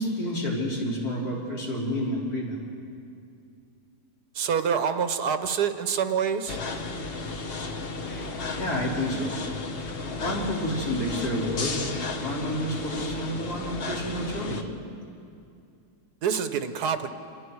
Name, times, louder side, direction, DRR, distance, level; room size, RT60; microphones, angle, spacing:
voice 1, 0.0-2.6 8.0-9.4 9.9-14.7, equal, 70° left, -5 dB, 4.7 m, -30 dB
voice 2, 4.3-6.6 16.2-17.1, right 7 dB, 85° right, 9 dB, 1.6 m, -26 dB
sound 1, 6.5-14.6, left 3 dB, 40° left, 1.1 m, -34 dB
28.0 x 20.5 x 4.7 m, 2.4 s
omnidirectional pair, 1.7 m